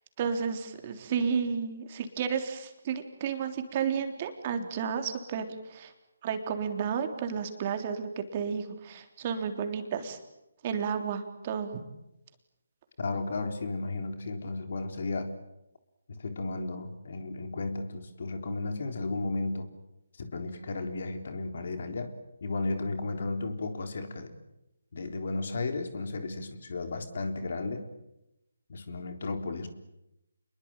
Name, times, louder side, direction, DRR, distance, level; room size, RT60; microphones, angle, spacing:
voice 1, 0.2-5.9 6.2-10.2 10.6-11.8, right 6 dB, 35° right, 6 dB, 3.5 m, -32 dB
voice 2, 13.0-15.3 16.1-19.7 20.2-22.1 22.4-24.3 24.9-27.9 28.7-29.7, left 3 dB, 55° left, 7 dB, 3.8 m, -34 dB
28.5 x 22.0 x 9.0 m, 0.90 s
figure-of-eight pair, 150°, 0 cm